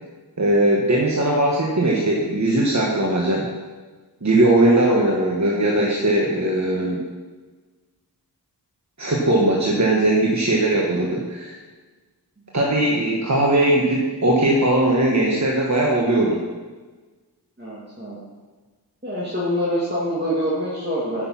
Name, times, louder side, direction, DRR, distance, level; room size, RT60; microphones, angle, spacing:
voice 1, 0.4-3.4 4.2-7.0 9.0-11.5 12.5-16.4, right 1 dB, 40° right, -3 dB, 1.5 m, -19 dB
voice 2, 17.6-18.2 19.0-21.3, equal, 25° right, -8 dB, 2.5 m, -25 dB
9.3 x 6.6 x 5.8 m, 1.3 s
wide cardioid pair, 50°, 42 cm